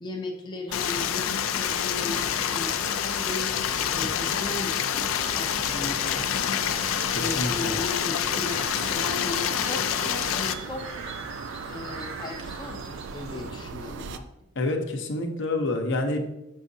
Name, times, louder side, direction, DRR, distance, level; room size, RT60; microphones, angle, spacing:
voice 1, 0.0-2.2 2.5-3.5 3.8-4.8 5.3-6.7 7.1-10.8 11.6-14.2, left 3 dB, 20° left, 1 dB, 0.5 m, -36 dB
Stream, 0.7-10.5, left 9 dB, 90° left, 0.4 m, -27 dB
sound 1, 0.7-14.2, right 5 dB, 60° right, 0.4 m, -40 dB
sound 2, 6.6-13.5, right 3 dB, 90° right, 0.9 m, -42 dB
voice 2, 7.1-7.7 14.6-16.2, left 2 dB, 65° left, 4 dB, 0.7 m, -28 dB
6.3 x 6.0 x 2.7 m, 0.90 s
head